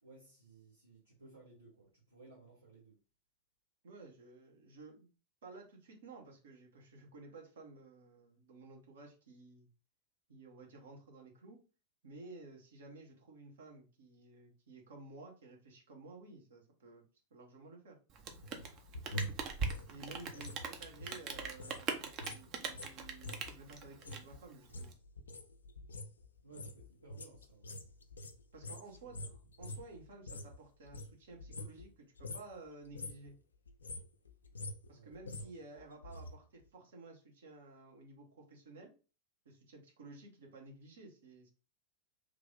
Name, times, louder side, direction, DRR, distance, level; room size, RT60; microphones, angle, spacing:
voice 1, 0.0-3.0 26.4-27.8 29.0-29.3 34.9-35.6, right 3 dB, 85° right, 1.1 m, -59 dB
voice 2, 3.8-5.1 5.4-9.7 10.3-11.6 12.0-17.0 17.3-18.0 19.9-24.9 28.5-33.3 34.9-38.9 39.4-41.5, right 3 dB, 60° right, 1.0 m, -54 dB
Rain, 18.1-24.9, right 5 dB, 35° right, 0.6 m, -41 dB
sound 1, 18.3-21.8 22.1-30.6 30.8-32.5 32.8-33.3 33.7-36.3 36.6-36.7, left 1 dB, 75° left, 0.4 m, -46 dB
3.3 x 2.5 x 3.7 m
figure-of-eight pair, 90°, 0 cm